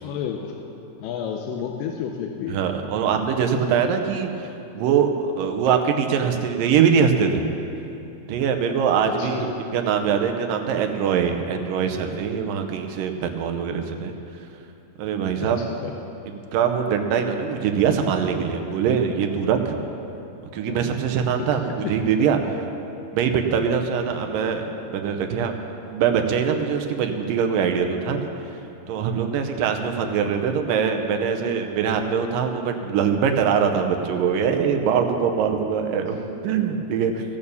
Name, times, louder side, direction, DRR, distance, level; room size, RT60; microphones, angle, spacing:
voice 1, 0.0-0.5 1.0-2.6 9.1-9.3 15.6-15.9 20.7-20.9 21.4-21.5 21.8-21.9 24.5-24.6 30.0-30.3, left 8 dB, 75° left, 2 dB, 2.1 m, -31 dB
voice 2, 2.5-4.3 4.8-7.4 8.3-14.1 15.0-15.7 16.3-19.8 20.5-22.6 23.1-28.3 28.9-37.2, right 7 dB, 75° right, 5 dB, 2.2 m, -23 dB
14.0 x 8.9 x 6.9 m, 2.8 s
omnidirectional pair, 4.4 m